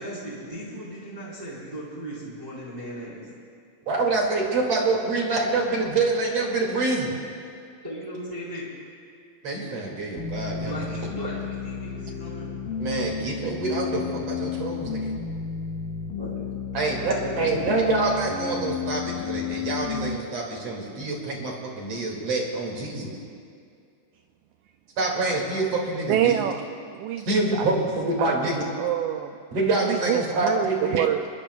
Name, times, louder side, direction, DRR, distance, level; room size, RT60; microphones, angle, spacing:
voice 1, 0.0-3.2 7.8-8.7 10.6-12.5 16.2-16.4 16.7-17.5, right 1 dB, 10° right, -7 dB, 3.5 m, -37 dB
voice 2, 3.9-7.1 9.4-10.7 12.8-15.1 16.7-23.2 25.0-26.3 27.3-28.6 29.5-31.0, right 3 dB, 50° right, -1 dB, 3.2 m, -26 dB
sound 1, 10.2-20.2, left 6 dB, 85° left, 2.7 m, -32 dB
voice 3, 26.1-26.6 26.9-27.7 28.2-29.4 29.9-31.3, right 11 dB, 80° right, 6 dB, 1.7 m, -26 dB
25.5 x 22.0 x 2.3 m, 2.3 s
omnidirectional pair, 3.9 m